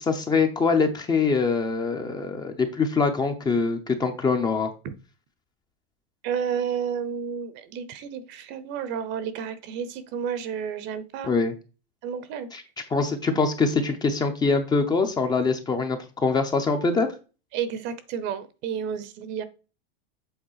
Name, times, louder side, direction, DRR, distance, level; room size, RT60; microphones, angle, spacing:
voice 1, 0.0-4.7 11.2-11.5 12.5-12.6 12.9-17.1, left 4 dB, 15° left, 6 dB, 0.7 m, -24 dB
voice 2, 6.2-11.3 12.0-12.5 17.5-19.4, right 7 dB, 35° right, 14 dB, 0.8 m, -31 dB
7.9 x 3.5 x 5.6 m, 0.32 s
supercardioid pair, 150°, 30 cm